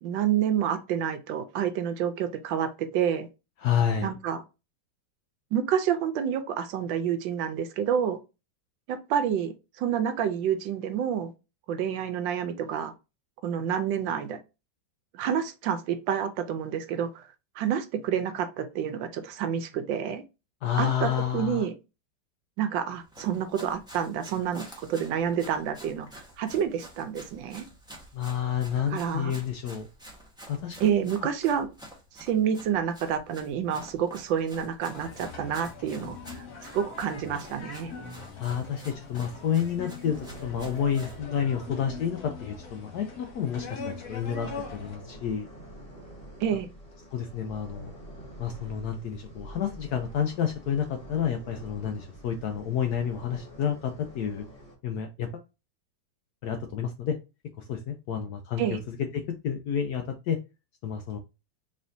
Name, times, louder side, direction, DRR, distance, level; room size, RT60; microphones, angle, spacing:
voice 1, 0.0-3.3 4.0-4.4 5.5-8.2 8.9-11.3 11.7-12.9 13.4-14.4 15.1-17.3 17.6-20.2 20.8-21.7 22.6-27.7 28.9-29.3 30.8-31.7 32.2-36.5 36.7-37.9 46.4-46.7 58.6-58.8, right 8 dB, 75° right, 1.3 m, -28 dB
voice 2, 3.6-4.1 20.6-21.7 28.1-29.9 30.5-30.8 38.4-45.5 47.1-47.9 48.4-54.5 54.8-55.4 56.4-57.2 57.6-58.8 59.1-60.4 60.8-61.2, left 8 dB, 75° left, 0.9 m, -30 dB
Run, 22.9-41.2, equal, 5° right, 0.6 m, -49 dB
sound 1, 34.9-45.0, left 4 dB, 55° left, 1.5 m, -42 dB
sound 2, 40.1-54.8, right 1 dB, 20° left, 1.8 m, -47 dB
4.2 x 3.5 x 2.6 m
omnidirectional pair, 2.1 m